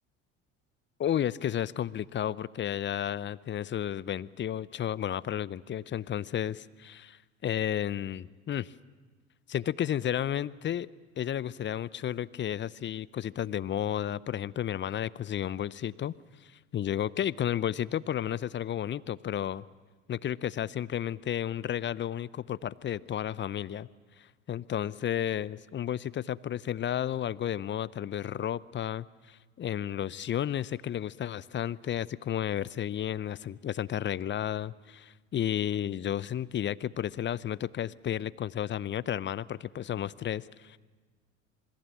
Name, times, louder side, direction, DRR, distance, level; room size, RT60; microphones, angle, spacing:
voice 1, 1.0-8.7 9.5-10.9 11.2-16.1 16.7-19.6 20.1-23.9 24.5-40.8, left 10 dB, 30° left, 20 dB, 0.6 m, -32 dB
27.0 x 21.5 x 7.3 m, 1.4 s
hypercardioid pair, 70°, 38 cm